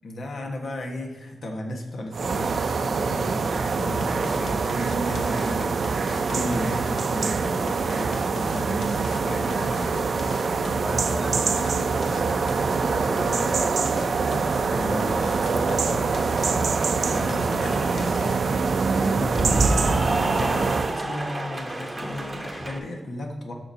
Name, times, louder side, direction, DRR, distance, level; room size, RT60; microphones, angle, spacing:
voice 1, 0.0-9.7 14.2-23.5, left 1 dB, 65° left, 2 dB, 1.3 m, -35 dB
sound 1, 2.1-21.0, right 4 dB, 60° right, 0.4 m, -24 dB
sound 2, 3.8-18.6, left 3 dB, 80° left, 1.1 m, -39 dB
voice 2, 10.4-14.3, equal, 5° left, 8 dB, 0.6 m, -39 dB
Cheering / Applause, 15.1-22.8, right 2 dB, 20° right, 1.0 m, -31 dB
13.5 x 5.9 x 2.8 m, 1.3 s
wide cardioid pair, 125°, 0 cm